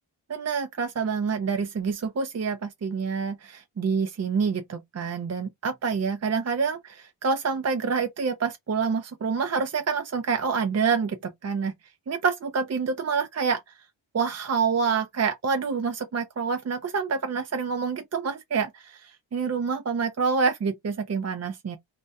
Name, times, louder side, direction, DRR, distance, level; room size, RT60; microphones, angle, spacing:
voice 1, 0.3-11.7 12.1-13.6 14.1-21.8, right 5 dB, 35° right, 0.4 m, -27 dB
2.6 x 2.1 x 3.3 m
wide cardioid pair, 110°, 49 cm